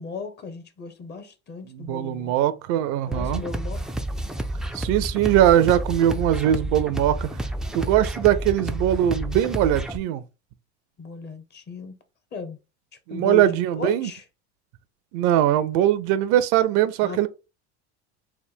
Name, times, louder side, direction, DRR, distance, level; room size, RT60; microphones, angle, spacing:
voice 1, 0.0-2.3 3.1-3.8 11.0-12.0 12.3-12.6 13.1-14.2 17.0-17.3, left 4 dB, 30° left, 0.8 m, -36 dB
voice 2, 1.7-3.4 4.7-7.3 7.7-10.2 13.1-14.1 15.1-17.3, right 11 dB, 60° right, 0.5 m, -21 dB
sound 1, 3.1-10.0, right 1 dB, ahead, 0.3 m, -30 dB
3.4 x 2.2 x 4.3 m
hypercardioid pair, 90°, 33 cm